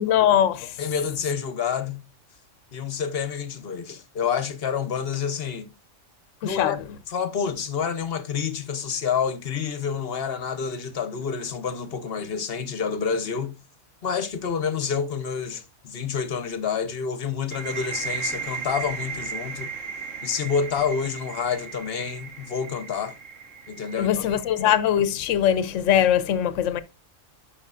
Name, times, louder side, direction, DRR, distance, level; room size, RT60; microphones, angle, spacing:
voice 1, 0.0-0.8 6.4-6.8 24.0-26.8, left 10 dB, 80° left, 1.0 m, -21 dB
voice 2, 0.8-2.0 2.7-5.7 6.4-6.8 7.1-13.6 14.0-19.7 20.2-23.1 23.7-24.4, left 6 dB, 55° left, 1.0 m, -28 dB
sound 1, 17.5-25.0, right 6 dB, 80° right, 2.2 m, -36 dB
11.0 x 5.6 x 2.4 m
omnidirectional pair, 1.3 m